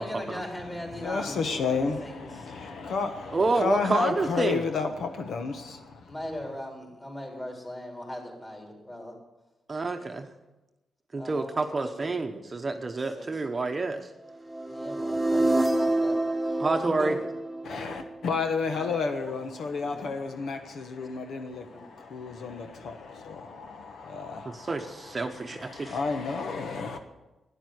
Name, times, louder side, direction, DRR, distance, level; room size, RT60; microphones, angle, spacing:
voice 1, 0.0-2.5 6.1-9.2 11.2-12.1 13.0-13.5 14.7-17.2 18.6-18.9 19.2-19.3 19.8-20.1 21.6-21.7, left 1 dB, 20° left, 3.9 m, -40 dB
voice 2, 1.0-6.1 17.6-27.0, left 4 dB, 75° left, 1.2 m, -32 dB
voice 3, 3.3-4.6 9.7-10.3 11.1-14.1 16.6-17.1 24.5-26.0, right 3 dB, 30° right, 0.9 m, -28 dB
sound 1, 14.5-18.5, right 2 dB, 5° right, 1.5 m, -27 dB
12.0 x 10.0 x 7.9 m
cardioid pair, 120°, 0 cm